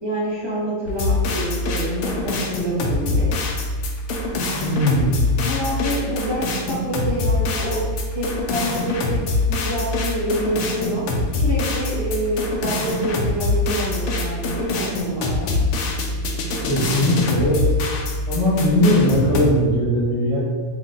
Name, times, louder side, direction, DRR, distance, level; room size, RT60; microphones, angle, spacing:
voice 1, 0.0-3.3 4.9-5.0 5.4-7.8 8.1-15.6, equal, 25° right, -6 dB, 0.7 m, -27 dB
sound 1, 0.9-19.5, left 2 dB, 80° left, 1.0 m, -24 dB
voice 2, 4.6-5.2 16.7-17.7 18.3-20.4, left 1 dB, 25° left, -11 dB, 0.4 m, -19 dB
3.1 x 2.7 x 3.7 m, 1.5 s
omnidirectional pair, 1.4 m